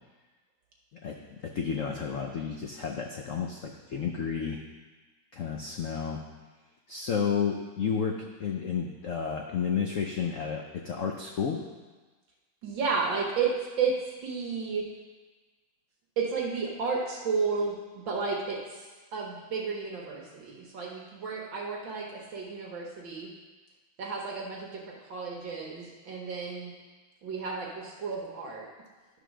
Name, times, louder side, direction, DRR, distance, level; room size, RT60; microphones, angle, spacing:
voice 1, 1.4-4.6 5.3-6.2 6.9-11.6, left 6 dB, 85° left, 2 dB, 0.6 m, -31 dB
voice 2, 12.6-14.9 16.2-23.3 24.0-26.7 27.2-28.7, right 5 dB, 70° right, -2 dB, 1.8 m, -32 dB
11.0 x 3.9 x 6.1 m, 1.3 s
omnidirectional pair, 2.2 m